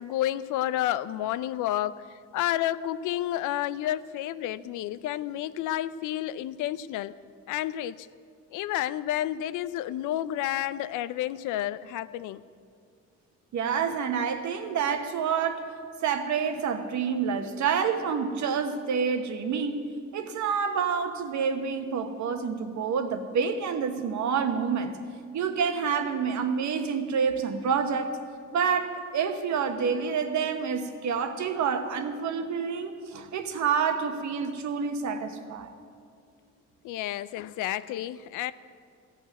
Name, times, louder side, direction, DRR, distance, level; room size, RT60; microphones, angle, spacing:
voice 1, 0.0-2.0 2.3-7.1 7.5-8.1 8.5-12.4 36.8-38.5, left 13 dB, 90° left, 16 dB, 0.5 m, -30 dB
voice 2, 13.5-15.7 16.0-19.8 20.1-25.0 25.3-28.2 28.5-35.7, right 6 dB, 70° right, 7 dB, 1.2 m, -28 dB
14.5 x 6.1 x 9.3 m, 2.2 s
cardioid pair, 90°, 30 cm